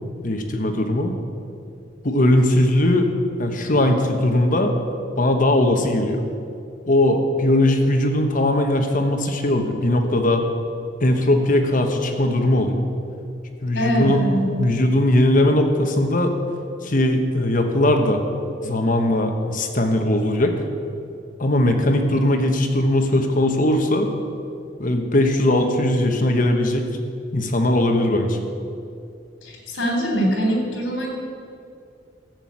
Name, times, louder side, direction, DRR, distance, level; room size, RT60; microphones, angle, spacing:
voice 1, 0.2-1.1 2.0-3.1 3.4-4.7 5.2-6.2 6.9-10.4 11.0-12.8 13.6-14.2 14.6-16.3 16.8-18.2 18.6-20.6 21.4-24.1 24.8-26.9 27.3-28.4, left 1 dB, 45° left, 5 dB, 1.2 m, -19 dB
voice 2, 13.8-14.5 29.4-31.1, right 1 dB, 80° left, 1 dB, 3.4 m, -22 dB
13.5 x 7.8 x 8.6 m, 2.5 s
head